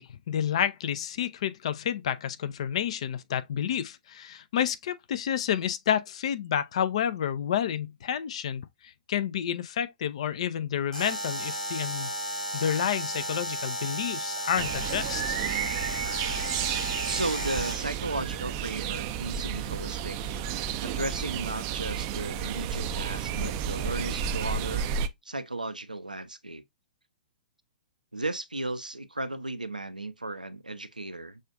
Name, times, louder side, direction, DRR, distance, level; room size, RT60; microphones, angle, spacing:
voice 1, 0.0-12.1 12.5-15.4, left 9 dB, 50° left, 0.5 m, -30 dB
Alarm, 10.9-17.9, equal, 75° left, 1.7 m, -34 dB
sound 1, 14.6-25.1, right 8 dB, 30° right, 0.4 m, -32 dB
voice 2, 17.1-20.4 20.8-24.9 25.2-26.6 28.1-31.4, right 2 dB, 85° right, 0.5 m, -35 dB
6.4 x 2.4 x 2.5 m
figure-of-eight pair, 115°, 4 cm